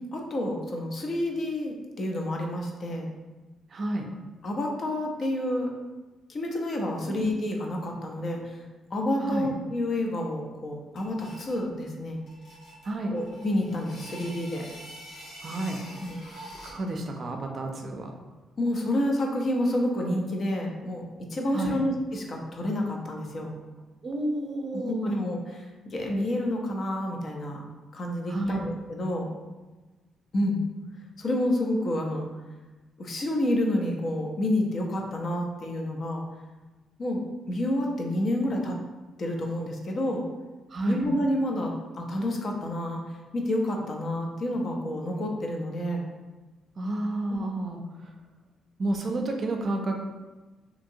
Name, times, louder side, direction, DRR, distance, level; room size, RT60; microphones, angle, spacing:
voice 1, 0.1-3.1 4.4-5.7 6.3-8.6 8.9-12.2 13.1-14.7 16.0-16.2 18.6-23.6 24.9-27.6 27.9-29.3 30.3-30.6 31.2-32.3 33.0-36.2 37.0-37.2 37.5-38.8 39.2-40.2 40.9-43.0 43.3-46.0, left 1 dB, 45° left, 1 dB, 0.5 m, -29 dB
voice 2, 3.7-4.1 7.1-7.2 9.2-9.5 12.8-13.2 15.4-15.8 16.6-18.1 21.5-21.8 24.0-25.1 28.3-28.6 40.7-41.0 46.8-48.1 48.8-50.1, right 2 dB, 45° right, 3 dB, 0.4 m, -30 dB
sound 1, 11.0-11.6 12.3-16.9, equal, 90° left, 1.1 m, -45 dB
2.8 x 2.7 x 2.6 m, 1.2 s
cardioid pair, 90°, 0 cm